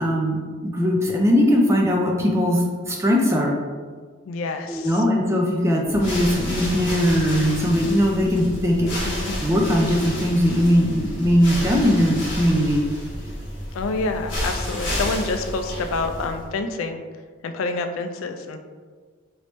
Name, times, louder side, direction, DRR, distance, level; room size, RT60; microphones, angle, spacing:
voice 1, 0.0-3.6 4.7-9.0 9.4-12.8, equal, 15° right, 0 dB, 0.4 m, -20 dB
voice 2, 4.3-5.0 6.6-7.0 8.6-9.3 13.7-17.0 17.4-18.6, left 3 dB, 85° left, 7 dB, 0.3 m, -28 dB
sound 1, 5.8-16.5, left 1 dB, 60° left, 1.2 m, -30 dB
3.1 x 3.0 x 3.0 m, 1.5 s
head